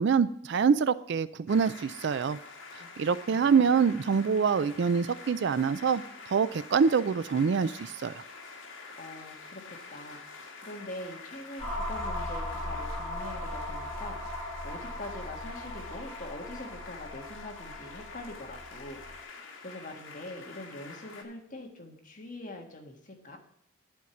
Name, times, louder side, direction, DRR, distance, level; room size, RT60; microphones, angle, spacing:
voice 1, 0.0-2.4 3.0-6.0 6.3-8.2, right 6 dB, 60° right, 16 dB, 0.4 m, -25 dB
sound 1, 1.5-21.2, left 4 dB, 75° left, 1.6 m, -47 dB
voice 2, 2.8-3.8 9.0-19.4 19.6-23.4, left 1 dB, 40° left, 2 dB, 1.6 m, -44 dB
sound 2, 11.6-19.2, left 1 dB, 10° left, 4.3 m, -38 dB
11.0 x 4.6 x 7.1 m, 0.71 s
head